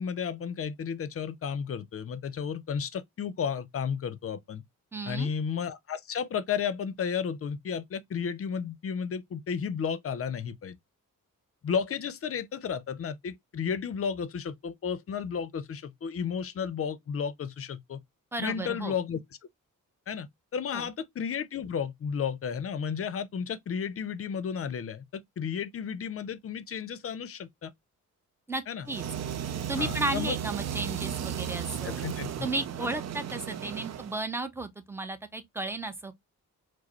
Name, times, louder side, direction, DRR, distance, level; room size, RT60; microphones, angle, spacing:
voice 1, 0.0-4.6 5.1-10.8 11.6-18.0 18.4-19.2 20.1-20.3 20.5-27.7 28.7-28.9 29.8-30.4 31.8-32.5 32.8-32.9, left 7 dB, 45° left, 0.5 m, -33 dB
voice 2, 4.9-5.3 18.3-18.9 20.7-20.9 28.5-29.1 29.5-32.0 32.4-36.1, right 2 dB, 5° right, 0.7 m, -34 dB
sound 1, 28.9-34.2, right 9 dB, 55° right, 0.5 m, -35 dB
4.7 x 2.0 x 2.9 m
cardioid pair, 90°, 33 cm